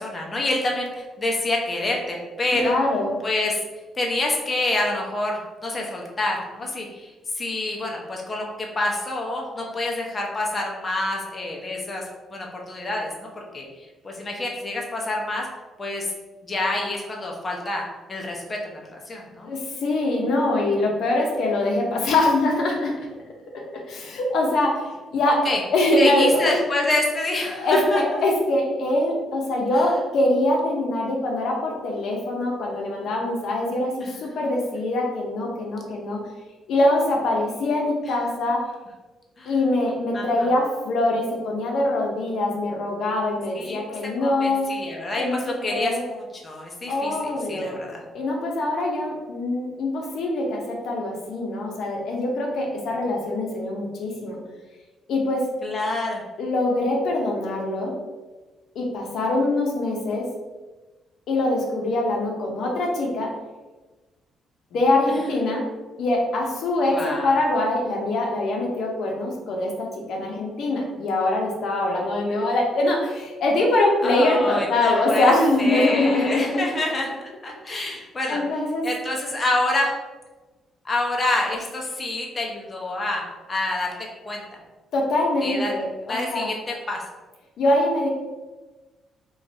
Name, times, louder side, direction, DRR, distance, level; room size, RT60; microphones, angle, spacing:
voice 1, 0.0-2.8 3.2-3.6 4.0-12.0 12.3-13.7 14.0-15.5 15.8-16.1 16.4-19.5 25.4-25.6 26.0-28.0 34.0-34.1 39.4-39.5 40.1-40.5 43.6-43.8 44.2-48.0 55.6-56.2 66.9-67.3 74.0-75.3 75.6-77.1 77.4-78.4 78.8-79.9 80.8-83.9 84.2-84.4 85.4-85.8 86.1-87.0, left 2 dB, 30° left, -1 dB, 0.6 m, -27 dB
voice 2, 2.5-3.2 19.4-22.9 23.9-26.6 27.5-36.2 36.7-38.6 39.5-44.7 45.2-45.4 45.7-46.0 46.9-47.8 48.1-54.4 55.1-55.4 56.4-57.9 58.7-60.3 61.3-63.3 64.7-65.6 66.0-76.7 77.7-77.8 78.3-78.8 84.9-86.5 87.6-88.1, left 2 dB, 70° left, -1 dB, 0.7 m, -23 dB
2.5 x 2.3 x 4.1 m, 1.2 s
cardioid pair, 90°, 0 cm